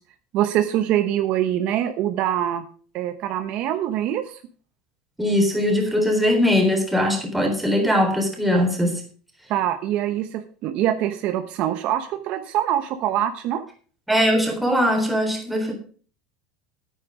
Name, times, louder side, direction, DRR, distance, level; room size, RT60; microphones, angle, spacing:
voice 1, 0.3-2.6 2.9-4.4 9.5-13.6, right 11 dB, 50° right, 9 dB, 1.0 m, -24 dB
voice 2, 5.2-9.0 14.1-15.7, equal, 5° right, 2 dB, 3.7 m, -20 dB
9.6 x 9.3 x 5.0 m, 0.42 s
supercardioid pair, 135°, 3 cm